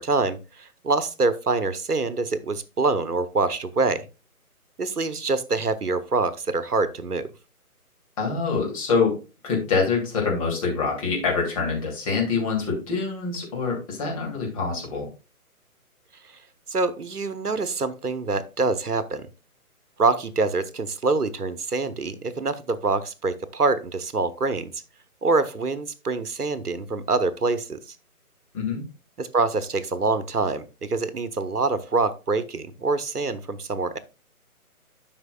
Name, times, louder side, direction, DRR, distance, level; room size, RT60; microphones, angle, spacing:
voice 1, 0.0-4.1 4.8-7.3 16.7-19.3 20.0-24.7 25.2-27.8 29.2-34.0, right 3 dB, 80° right, 13 dB, 1.0 m, -25 dB
voice 2, 8.2-9.1 9.4-15.1 28.5-28.8, left 4 dB, 25° left, -1 dB, 2.6 m, -25 dB
12.0 x 5.8 x 2.3 m, 0.30 s
figure-of-eight pair, 145°, 45 cm